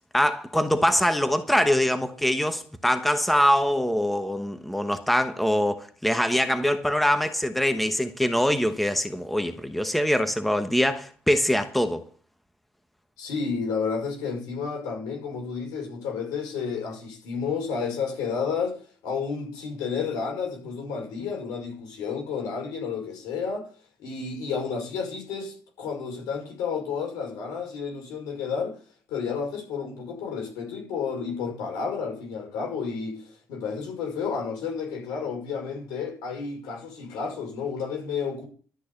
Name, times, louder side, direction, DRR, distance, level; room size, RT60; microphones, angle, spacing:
voice 1, 0.1-12.0, equal, ahead, 1.1 m, -23 dB
voice 2, 13.2-18.8 19.0-23.7 24.0-28.8 29.1-38.5, left 5 dB, 85° left, 5.5 m, -31 dB
12.5 x 6.3 x 8.4 m
cardioid pair, 85°, 7 cm